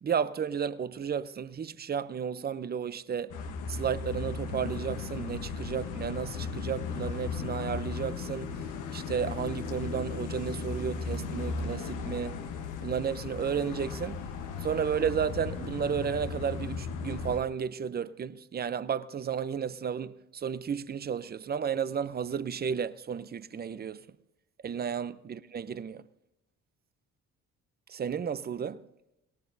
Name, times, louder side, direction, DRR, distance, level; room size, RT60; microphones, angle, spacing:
voice 1, 0.0-3.3 3.7-8.6 8.9-12.4 12.8-14.3 14.6-24.0 24.6-26.0 27.9-28.8, right 7 dB, 30° right, 0.6 m, -33 dB
sound 1, 3.3-17.4, left 5 dB, 90° left, 1.1 m, -36 dB
22.0 x 18.0 x 2.7 m
cardioid pair, 90°, 30 cm